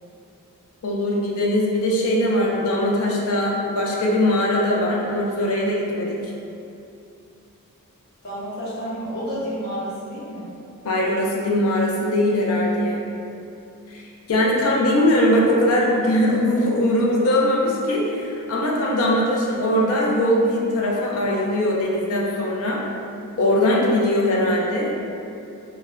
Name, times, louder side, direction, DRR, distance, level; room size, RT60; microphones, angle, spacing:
voice 1, 0.8-6.3 10.8-13.0 13.9-14.0 14.3-22.8 23.4-24.9, left 1 dB, 70° left, -2 dB, 0.5 m, -21 dB
voice 2, 8.2-10.5, equal, 50° left, -9 dB, 0.8 m, -30 dB
2.1 x 2.0 x 3.5 m, 2.6 s
head